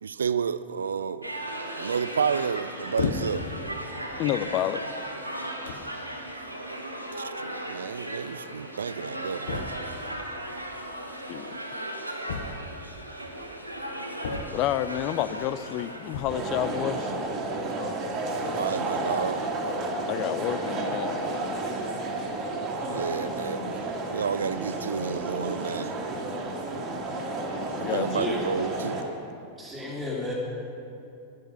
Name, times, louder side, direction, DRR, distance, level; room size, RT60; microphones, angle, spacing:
voice 1, 0.0-1.3 1.8-3.5 5.9-6.1 6.7-6.8 7.2-9.7 13.9-14.3 18.5-19.5 22.8-25.9 27.9-29.0, right 6 dB, 70° right, 0.3 m, -31 dB
sound 1, 1.2-16.4, right 1 dB, 90° right, 1.2 m, -37 dB
sound 2, 3.0-3.6 4.3-4.5 5.3-5.4 5.7-6.0 7.2-7.3 7.5-7.6 7.8-7.9 9.5-10.0 12.3-12.9 14.2-14.9 16.0-16.5, left 6 dB, 60° left, 0.9 m, -33 dB
voice 2, 4.2-4.8 7.8-7.9 11.3-11.6 14.5-17.1 20.1-21.3 27.8-28.3, left 12 dB, 40° left, 0.5 m, -29 dB
sound 3, 16.3-29.0, right 2 dB, 30° right, 1.9 m, -31 dB
voice 3, 28.0-28.4 29.6-30.3, left 2 dB, ahead, 2.6 m, -33 dB
11.5 x 11.5 x 5.8 m
figure-of-eight pair, 90°, 0 cm